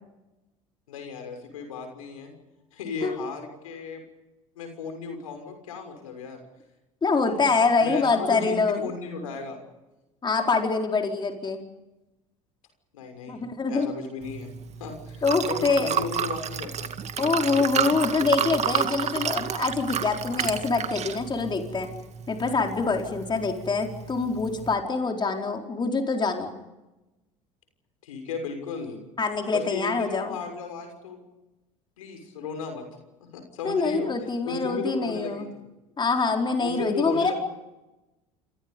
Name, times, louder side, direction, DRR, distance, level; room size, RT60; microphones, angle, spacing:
voice 1, 0.9-2.3 2.7-4.0 4.5-6.4 7.3-7.5 7.8-9.6 12.9-13.4 13.7-14.5 14.8-16.9 28.0-29.0 29.5-31.2 32.0-32.8 33.2-35.7 36.6-37.3, left 5 dB, 80° left, 5 dB, 6.2 m, -35 dB
voice 2, 7.0-8.8 10.2-11.6 13.3-13.9 15.2-15.9 17.2-21.9 22.3-26.5 29.2-30.4 33.6-35.5 36.0-37.3, left 4 dB, 25° left, 2 dB, 4.4 m, -25 dB
Liquid, 14.2-24.7, right 8 dB, 40° right, 2.3 m, -31 dB
28.5 x 28.0 x 5.4 m, 1.0 s
hypercardioid pair, 70°, 17 cm